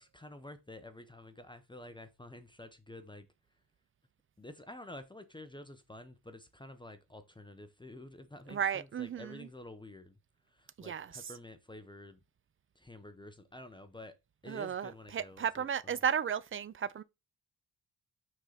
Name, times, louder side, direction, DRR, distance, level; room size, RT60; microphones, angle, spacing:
voice 1, 0.0-3.3 4.4-10.2 10.5-12.2 12.7-14.2 14.4-16.0, left 1 dB, 10° left, 0.8 m, -50 dB
voice 2, 8.5-9.5 10.8-11.2 14.5-17.0, right 8 dB, 35° right, 0.5 m, -34 dB
6.2 x 3.9 x 5.7 m
cardioid pair, 115°, 39 cm